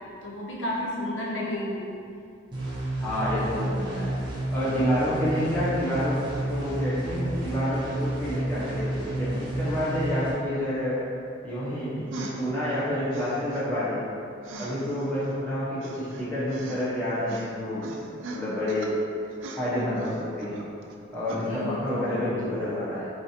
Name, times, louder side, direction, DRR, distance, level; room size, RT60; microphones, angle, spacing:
voice 1, 0.2-1.9 21.4-22.6, left 1 dB, 75° left, -4 dB, 0.6 m, -32 dB
sound 1, 2.5-10.3, right 1 dB, 20° right, 0.9 m, -30 dB
voice 2, 3.0-4.1 4.5-6.2 6.5-11.0 11.4-14.0 14.6-18.0 18.3-18.9 19.5-20.6 21.1-23.1, equal, 10° left, -12 dB, 1.1 m, -29 dB
sound 2, 12.1-12.5 13.1-13.7 14.4-15.3 15.8-17.0 17.3-17.5 17.8-18.9 19.3-20.9 21.3-21.4, right 2 dB, 75° right, 0.4 m, -40 dB
4.3 x 3.3 x 2.8 m, 2.5 s
head